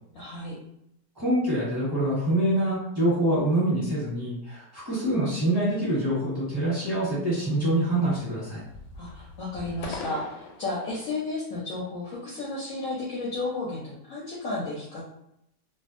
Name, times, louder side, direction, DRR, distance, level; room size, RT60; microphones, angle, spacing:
voice 1, 0.1-0.6 8.9-15.0, left 2 dB, 65° left, -5 dB, 0.9 m, -33 dB
voice 2, 1.1-8.6, right 1 dB, 15° right, -10 dB, 1.1 m, -25 dB
sound 1, 5.1-6.3 6.7-7.1 7.4-8.4 8.6-11.2, left 3 dB, 85° left, 1.2 m, -43 dB
2.7 x 2.3 x 2.4 m, 0.78 s
omnidirectional pair, 1.8 m